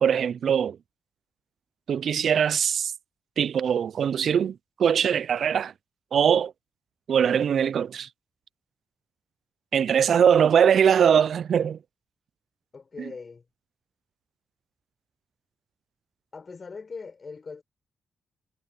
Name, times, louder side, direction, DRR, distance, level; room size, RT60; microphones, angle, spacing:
voice 1, 0.0-0.8 1.9-2.9 3.4-5.7 6.1-6.5 7.1-8.1 9.7-11.8 13.0-13.1, right 8 dB, 65° right, 0.5 m, -22 dB
voice 2, 10.0-10.4 12.7-13.4 16.3-17.6, left 4 dB, 45° left, 6.1 m, -41 dB
supercardioid pair, 45°, 0 cm